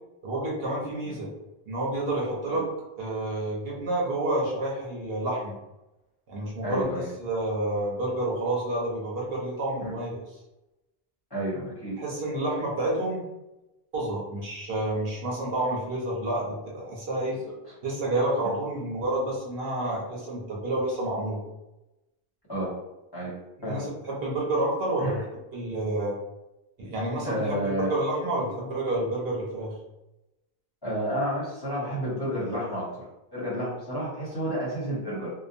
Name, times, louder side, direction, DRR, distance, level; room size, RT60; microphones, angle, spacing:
voice 1, 0.2-1.3 1.7-2.7 3.0-5.5 6.3-6.9 7.2-10.2 12.0-13.2 13.9-17.4 17.8-21.4 23.6-25.2 25.5-26.2 26.8-29.7, right 1 dB, 70° right, -4 dB, 1.0 m, -29 dB
voice 2, 6.6-7.1 9.8-9.9 11.3-12.0 22.5-22.8 23.1-23.4 23.6-23.8 25.0-25.2 27.2-27.9 30.8-33.0 33.3-35.3, equal, 25° left, -8 dB, 0.9 m, -30 dB
2.8 x 2.1 x 2.6 m, 0.96 s
omnidirectional pair, 1.0 m